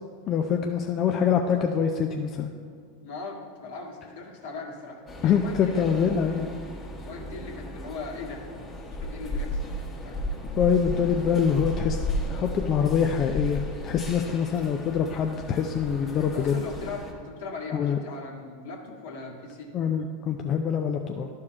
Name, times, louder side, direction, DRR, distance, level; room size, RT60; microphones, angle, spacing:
voice 1, 0.3-2.5 5.2-6.5 10.6-12.0 12.3-16.6 17.7-18.0 19.7-21.3, left 7 dB, 40° left, 3 dB, 0.5 m, -25 dB
voice 2, 3.0-5.9 7.1-8.5 9.0-10.2 14.2-14.4 16.1-19.7 20.0-20.1, left 3 dB, 70° left, -2 dB, 1.8 m, -39 dB
sound 1, 5.1-17.1, left 1 dB, 25° left, 1.5 m, -34 dB
12.0 x 4.8 x 4.3 m, 2.1 s
hypercardioid pair, 95°, 0 cm